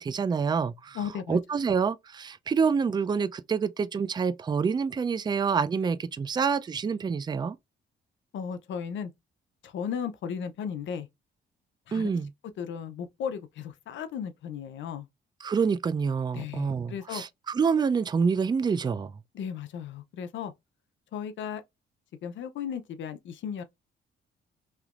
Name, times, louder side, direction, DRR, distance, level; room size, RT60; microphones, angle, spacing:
voice 1, 0.0-1.0 1.3-7.6 11.9-12.3 15.4-19.1, right 5 dB, 20° right, 0.3 m, -27 dB
voice 2, 0.9-1.4 8.3-9.1 9.6-11.1 11.9-12.1 12.6-15.1 16.3-17.2 19.3-20.5 21.1-21.6 22.2-23.6, left 7 dB, 70° left, 0.6 m, -35 dB
3.3 x 2.9 x 2.3 m
cardioid pair, 90°, 20 cm